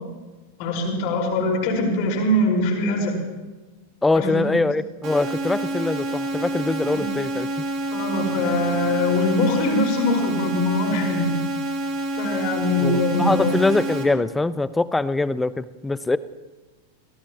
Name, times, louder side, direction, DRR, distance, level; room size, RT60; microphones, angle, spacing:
voice 1, 0.6-3.1 4.1-4.4 6.9-7.0 7.9-11.2 12.2-13.6, left 1 dB, 45° left, 0 dB, 5.0 m, -22 dB
voice 2, 4.0-7.7 12.8-16.2, left 3 dB, 10° left, 17 dB, 0.6 m, -23 dB
sound 1, 5.0-14.0, right 1 dB, 35° right, 3.1 m, -28 dB
27.0 x 17.5 x 3.0 m, 1.2 s
figure-of-eight pair, 90°, 0 cm